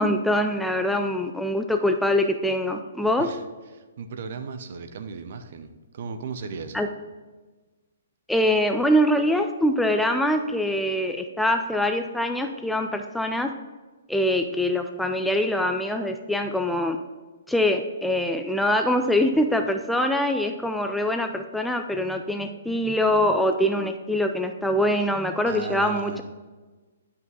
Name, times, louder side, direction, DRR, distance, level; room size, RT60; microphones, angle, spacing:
voice 1, 0.0-3.3 6.7-6.9 8.3-13.5 14.1-17.0 17.5-26.2, left 1 dB, ahead, 5 dB, 0.4 m, -24 dB
voice 2, 3.7-6.8 25.5-26.2, right 5 dB, 50° right, 8 dB, 0.7 m, -36 dB
10.5 x 5.7 x 3.9 m, 1.3 s
figure-of-eight pair, 120°, 0 cm